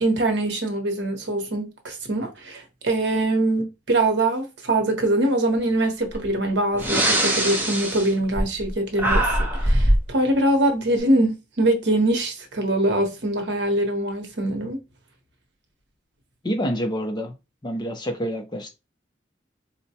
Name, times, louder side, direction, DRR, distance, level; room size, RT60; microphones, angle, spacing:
voice 1, 0.0-14.8, right 1 dB, 65° right, 0.9 m, -23 dB
Breathing, 6.1-6.3 6.7-8.7 9.0-10.1, right 1 dB, 10° right, 0.7 m, -21 dB
voice 2, 16.4-17.3 17.6-18.7, equal, 25° left, 0.5 m, -27 dB
4.1 x 2.2 x 2.7 m
head